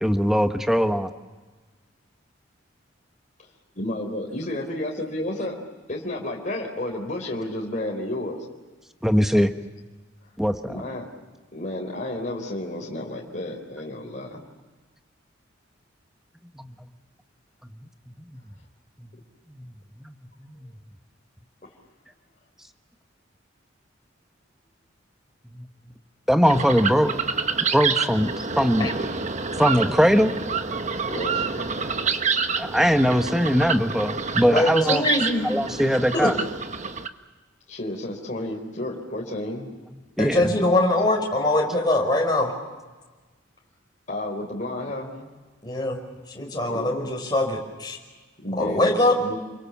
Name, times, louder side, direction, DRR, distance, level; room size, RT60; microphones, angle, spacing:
voice 1, 0.0-1.1 9.0-9.5 10.4-10.8 16.6-16.7 18.3-18.4 19.0-19.1 19.5-19.7 20.0-20.2 20.4-20.7 25.5-25.7 26.3-27.1 27.7-28.9 29.6-30.3 32.6-35.1 35.4-36.4 40.2-40.5, equal, ahead, 7 dB, 1.2 m, -21 dB
voice 2, 3.7-5.6 5.9-8.4 10.7-11.1 11.5-14.4 31.1-31.7 37.7-39.7 44.1-45.1 46.7-47.1 48.4-49.4, left 1 dB, 40° left, -1 dB, 4.0 m, -31 dB
sound 1, 26.4-37.1, right 5 dB, 35° right, 1.2 m, -28 dB
voice 3, 34.5-35.5 36.1-36.3 40.2-42.5 45.6-46.0 46.3-48.0 48.6-49.1, left 1 dB, 20° left, -1 dB, 5.4 m, -22 dB
29.5 x 23.0 x 7.2 m, 1.3 s
head